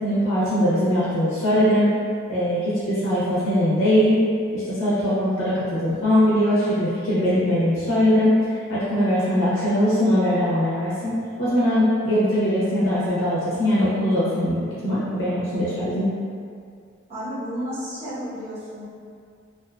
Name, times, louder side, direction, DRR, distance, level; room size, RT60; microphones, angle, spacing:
voice 1, 0.0-1.9 2.3-4.2 4.5-8.4 8.7-16.1, equal, 70° left, -10 dB, 0.6 m, -21 dB
voice 2, 17.1-18.9, equal, 30° right, -14 dB, 1.0 m, -32 dB
2.4 x 2.3 x 2.3 m, 2.3 s
head